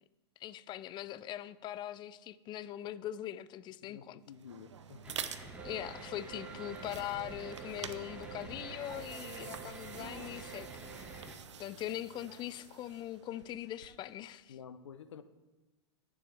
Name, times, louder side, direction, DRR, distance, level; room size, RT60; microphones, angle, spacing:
voice 1, 0.4-4.2 5.6-10.7 11.6-14.6, left 12 dB, 30° left, 16 dB, 0.5 m, -41 dB
voice 2, 3.8-5.3 10.3-10.4 14.5-15.2, left 7 dB, 85° left, 12 dB, 0.8 m, -51 dB
sound 1, 4.3-14.2, right 7 dB, 85° right, 0.7 m, -48 dB
sound 2, 5.0-11.4, right 1 dB, 10° right, 1.8 m, -49 dB
sound 3, 5.6-11.3, right 10 dB, 30° right, 3.0 m, -51 dB
19.5 x 7.0 x 3.5 m, 1.1 s
hypercardioid pair, 110°, 15 cm